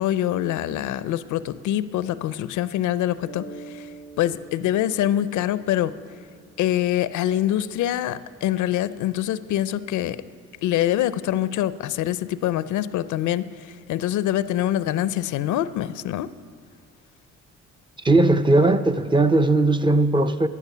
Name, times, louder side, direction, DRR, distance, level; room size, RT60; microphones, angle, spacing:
voice 1, 0.0-3.9 4.2-6.0 6.6-10.2 10.6-16.3, left 12 dB, 75° left, 16 dB, 0.5 m, -25 dB
Mallet percussion, 3.2-7.6, right 2 dB, 65° right, 3.2 m, -45 dB
voice 2, 18.0-20.5, right 2 dB, 15° right, 9 dB, 0.5 m, -18 dB
12.0 x 11.0 x 6.7 m, 2.1 s
cardioid pair, 90°, 30 cm